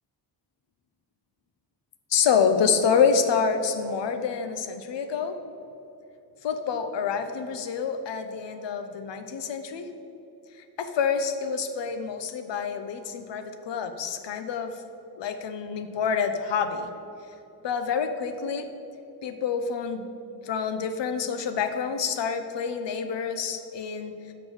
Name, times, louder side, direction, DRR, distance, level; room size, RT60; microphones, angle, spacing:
voice 1, 2.1-5.4 6.4-9.9 10.8-14.8 15.2-16.9 17.6-18.7 19.2-20.1 20.4-24.3, left 6 dB, 80° left, 8 dB, 0.7 m, -27 dB
5.9 x 4.9 x 6.2 m, 2.9 s
cardioid pair, 80°, 42 cm